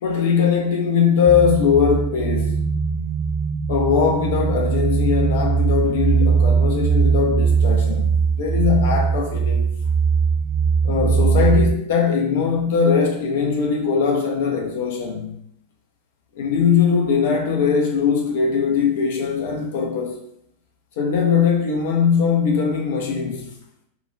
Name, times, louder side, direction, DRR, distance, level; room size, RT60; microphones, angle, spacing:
voice 1, 0.0-2.6 3.7-9.6 10.8-15.4 16.4-20.2 21.0-23.5, left 6 dB, 55° left, 0.4 m, -20 dB
sound 1, 1.3-11.7, right 5 dB, 25° right, 0.4 m, -20 dB
2.2 x 2.1 x 3.2 m
figure-of-eight pair, 90°, 0 cm